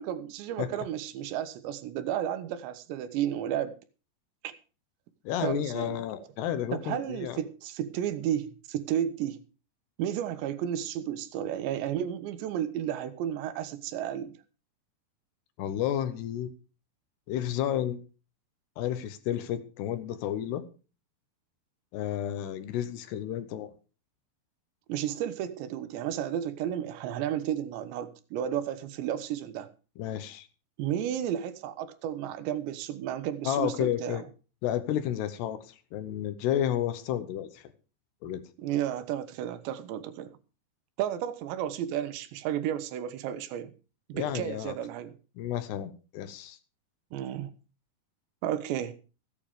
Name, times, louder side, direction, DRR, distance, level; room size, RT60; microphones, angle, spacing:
voice 1, 0.0-3.7 4.4-4.5 5.4-6.0 6.7-9.4 10.0-14.3 24.9-29.7 30.8-34.2 38.6-40.3 41.0-43.7 44.1-45.1 47.1-47.5 48.4-48.9, right 10 dB, 80° right, 3.2 m, -32 dB
voice 2, 5.3-7.4 15.6-16.5 17.3-18.0 18.8-20.6 21.9-23.7 30.0-30.5 33.5-34.2 34.6-37.6 38.2-38.4 44.1-44.7 45.4-46.6, left 11 dB, 75° left, 2.9 m, -31 dB
15.0 x 9.0 x 4.9 m
omnidirectional pair, 5.1 m